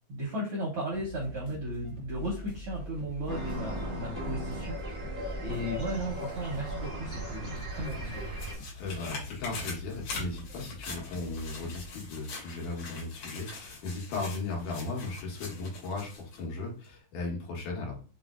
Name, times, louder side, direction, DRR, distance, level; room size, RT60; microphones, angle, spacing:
voice 1, 0.1-4.7 5.4-8.2, right 1 dB, 75° right, -4 dB, 1.2 m, -35 dB
sound 1, 0.9-11.9, left 1 dB, 35° left, 0.8 m, -44 dB
sound 2, 3.3-8.5, right 1 dB, 45° right, 0.4 m, -37 dB
sound 3, 7.7-16.4 16.8-16.9, left 3 dB, 60° left, 1.9 m, -43 dB
voice 2, 8.8-18.0, left 3 dB, 80° left, -1 dB, 2.6 m, -36 dB
5.3 x 2.1 x 2.3 m, 0.38 s
omnidirectional pair, 3.5 m